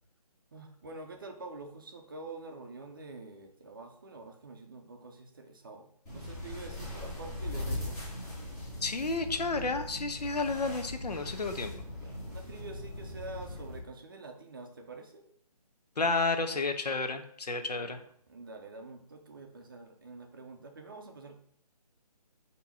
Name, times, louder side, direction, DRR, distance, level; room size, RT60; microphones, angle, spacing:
voice 1, 0.5-8.0 11.9-15.3 17.7-21.4, right 3 dB, 35° right, 4 dB, 0.6 m, -47 dB
sound 1, 6.1-13.8, left 1 dB, 10° left, 1.0 m, -40 dB
voice 2, 8.8-11.7 16.0-18.0, left 3 dB, 80° left, 7 dB, 0.7 m, -31 dB
3.5 x 2.8 x 4.2 m, 0.64 s
figure-of-eight pair, 160°, 20 cm